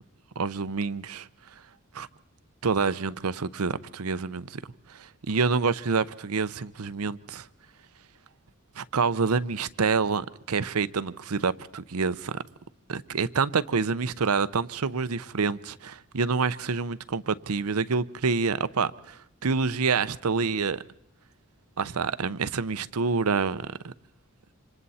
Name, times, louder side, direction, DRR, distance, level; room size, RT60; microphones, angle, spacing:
voice 1, 0.4-1.3 1.9-2.1 2.6-4.6 4.9-7.5 8.8-12.4 12.9-20.8 21.8-23.9, right 5 dB, 90° right, 0.7 m, -27 dB
27.5 x 26.5 x 4.2 m
head